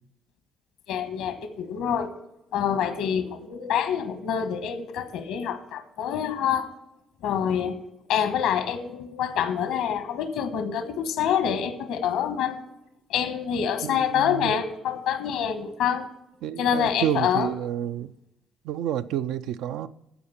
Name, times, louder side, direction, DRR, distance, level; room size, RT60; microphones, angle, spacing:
voice 1, 0.9-2.1 2.5-6.7 7.2-7.8 8.1-12.6 13.1-16.1 16.6-17.5, left 8 dB, 80° left, 1.2 m, -26 dB
voice 2, 13.8-14.5 16.4-18.1 18.6-19.9, right 11 dB, 80° right, 0.4 m, -29 dB
14.0 x 5.0 x 5.7 m
supercardioid pair, 70°, 0 cm